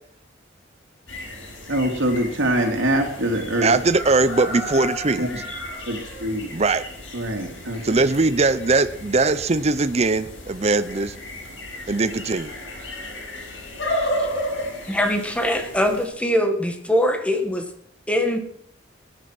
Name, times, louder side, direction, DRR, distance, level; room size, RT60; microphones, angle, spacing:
sound 1, 1.1-16.1, left 1 dB, 75° left, 6.6 m, -33 dB
voice 1, 1.7-3.7 5.2-5.3 5.8-6.5 7.1-8.0, right 1 dB, 90° right, 3 dB, 3.0 m, -24 dB
voice 2, 3.6-5.3 6.5-6.8 7.8-11.1 11.9-12.5, right 3 dB, 35° right, 13 dB, 0.7 m, -20 dB
voice 3, 14.9-17.6 18.1-18.4, equal, 5° left, 6 dB, 1.5 m, -22 dB
19.0 x 9.8 x 6.1 m, 0.68 s
head